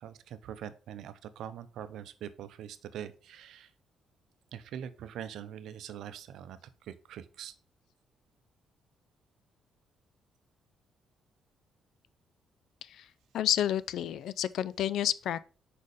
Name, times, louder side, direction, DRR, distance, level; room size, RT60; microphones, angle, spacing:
voice 1, 0.0-3.7 4.5-7.5, right 9 dB, 80° right, 0.6 m, -43 dB
voice 2, 13.3-15.4, left 11 dB, 75° left, 0.3 m, -30 dB
5.1 x 4.1 x 4.9 m
cardioid pair, 90°, 0 cm